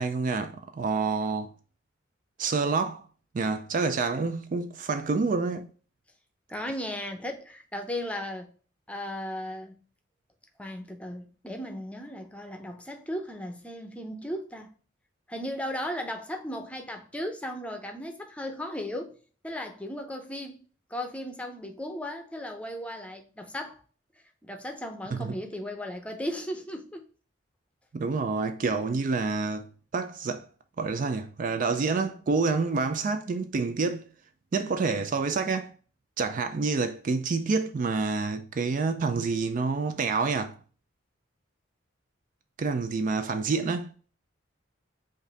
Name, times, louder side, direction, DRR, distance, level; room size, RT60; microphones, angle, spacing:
voice 1, 0.0-1.5 2.4-3.0 3.3-5.7 25.1-25.4 27.9-29.7 29.9-30.5 30.8-34.1 34.5-35.7 36.2-40.6 42.6-43.9, right 4 dB, 40° right, 0.3 m, -28 dB
voice 2, 6.5-8.5 8.9-9.7 10.6-14.7 15.3-19.2 19.4-20.6 20.9-23.8 24.4-27.1, left 1 dB, 5° left, 0.6 m, -36 dB
5.2 x 2.6 x 3.9 m
head